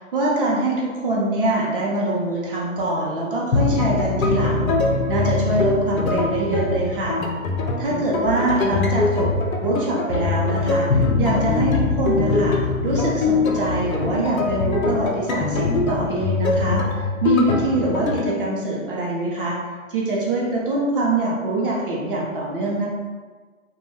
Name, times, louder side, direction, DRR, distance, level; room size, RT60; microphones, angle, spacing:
voice 1, 0.1-4.7 5.1-7.2 7.8-9.3 9.6-16.8 17.2-19.6 19.9-22.9, right 2 dB, 40° right, -4 dB, 0.6 m, -24 dB
sound 1, 3.5-18.3, left 3 dB, 75° left, 0.6 m, -22 dB
2.2 x 2.2 x 3.2 m, 1.4 s
hypercardioid pair, 140°, 41 cm